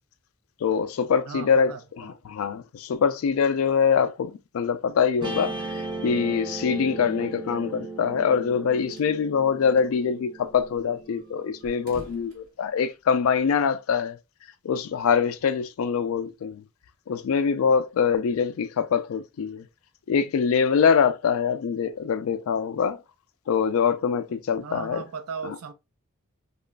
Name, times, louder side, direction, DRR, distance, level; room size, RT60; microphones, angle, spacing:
voice 1, 0.6-1.7 2.0-14.2 14.6-16.6 17.1-19.6 20.1-23.0 23.5-25.0 25.4-25.5, left 6 dB, 75° left, 0.3 m, -24 dB
voice 2, 1.3-2.1 24.6-25.7, right 5 dB, 90° right, 0.4 m, -37 dB
Guitar, 5.2-11.7, right 3 dB, 20° right, 0.5 m, -36 dB
sound 1, 8.9-9.2 9.5-9.6 9.8-9.9 10.4-13.4, equal, 40° right, 0.9 m, -49 dB
2.9 x 2.4 x 2.2 m
head